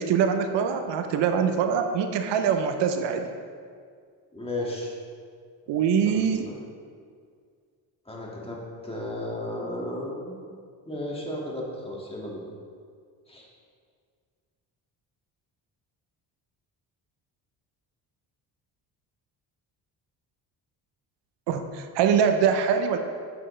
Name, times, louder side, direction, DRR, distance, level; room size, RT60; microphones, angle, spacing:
voice 1, 0.0-3.3 5.7-6.5 21.5-23.0, right 7 dB, 75° right, 7 dB, 0.7 m, -23 dB
voice 2, 4.3-4.9 5.7-5.8 6.0-6.6 8.1-10.5 10.9-12.4 13.3-13.5, left 1 dB, 15° left, -3 dB, 1.9 m, -34 dB
7.8 x 7.5 x 3.2 m, 2.1 s
cardioid pair, 80°, 43 cm